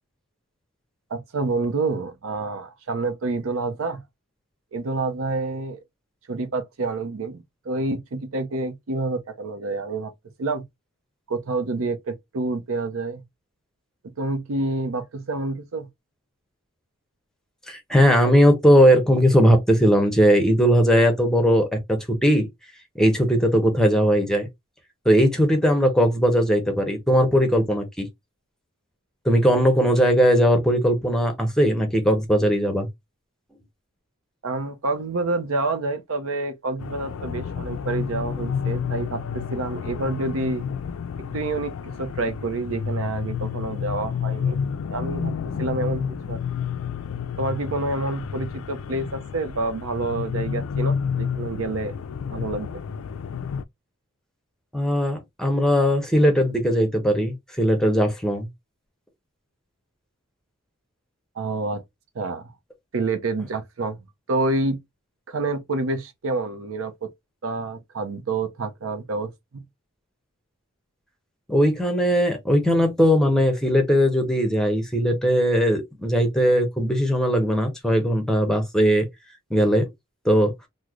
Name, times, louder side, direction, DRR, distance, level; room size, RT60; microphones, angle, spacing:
voice 1, 1.1-4.0 4.7-5.8 6.3-10.1 10.4-10.6 11.3-13.2 14.2-15.9 34.4-40.6 41.2-46.4 47.4-51.9 52.3-52.8 61.4-61.8 62.1-62.5 62.9-64.0 64.3-64.8 65.3-67.1 67.4-69.6, right 3 dB, 75° right, 0.6 m, -28 dB
voice 2, 17.7-22.5 22.9-24.5 25.0-28.1 29.2-32.9 54.7-58.5 71.5-79.1 79.5-79.9 80.2-80.5, equal, 5° left, 0.7 m, -19 dB
sound 1, 36.8-53.6, left 6 dB, 75° left, 0.3 m, -30 dB
3.1 x 2.1 x 3.5 m
head